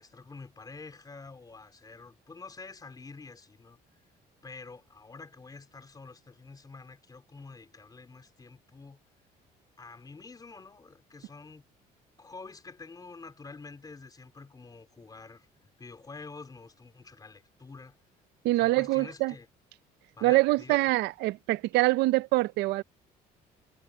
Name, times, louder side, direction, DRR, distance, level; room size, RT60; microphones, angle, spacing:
voice 1, 0.0-3.8 4.4-9.0 9.8-11.6 12.2-18.0 18.6-19.5 20.1-20.9, left 4 dB, 25° left, 4.1 m, -47 dB
voice 2, 18.4-19.3 20.2-22.8, right 20 dB, 85° right, 0.6 m, -25 dB
cardioid pair, 110°, 17 cm